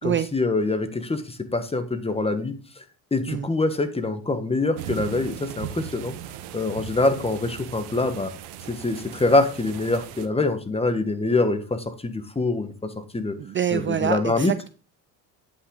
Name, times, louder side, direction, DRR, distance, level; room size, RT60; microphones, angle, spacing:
voice 1, 0.0-2.5 3.1-6.1 6.5-8.3 8.7-13.4 13.7-14.5, left 2 dB, 15° left, 9 dB, 1.4 m, -24 dB
sound 1, 4.8-10.3, right 10 dB, 80° right, 1.1 m, -38 dB
voice 2, 13.4-14.7, right 9 dB, 30° right, 13 dB, 0.4 m, -26 dB
9.4 x 5.9 x 3.8 m, 0.34 s
supercardioid pair, 85°, 39 cm